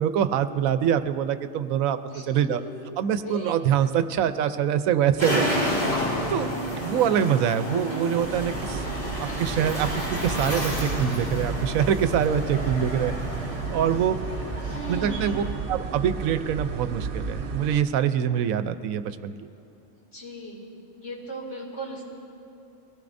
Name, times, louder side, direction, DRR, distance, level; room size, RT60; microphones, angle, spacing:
voice 1, 0.0-2.0 2.3-2.6 3.0-5.5 6.3-8.8 9.2-13.1 13.4-14.2 14.9-19.3, right 9 dB, 85° right, 11 dB, 1.0 m, -25 dB
voice 2, 3.2-3.5 7.7-8.0 14.6-15.5 20.1-20.7 21.0-22.0, right 2 dB, 60° left, -3 dB, 3.0 m, -37 dB
sound 1, 5.2-15.5, left 1 dB, 40° left, 3.4 m, -30 dB
sound 2, 8.2-17.8, right 4 dB, 50° right, 0.7 m, -33 dB
22.5 x 17.5 x 2.6 m, 2.7 s
omnidirectional pair, 1.4 m